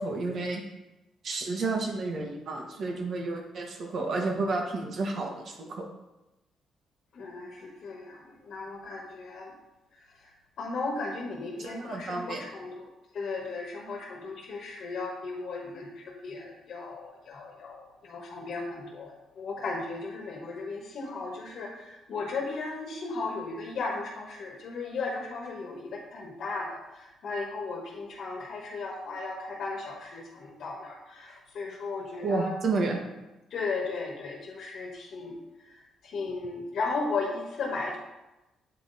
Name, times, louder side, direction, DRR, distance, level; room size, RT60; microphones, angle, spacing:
voice 1, 0.0-0.6 1.2-5.9 11.6-12.4 32.2-33.0, right 3 dB, 55° right, 2 dB, 1.3 m, -31 dB
voice 2, 7.1-9.5 10.6-12.8 13.1-32.5 33.5-35.4 36.0-38.0, left 3 dB, 65° left, 0 dB, 1.3 m, -36 dB
8.2 x 3.9 x 4.0 m, 1.0 s
cardioid pair, 90°, 0 cm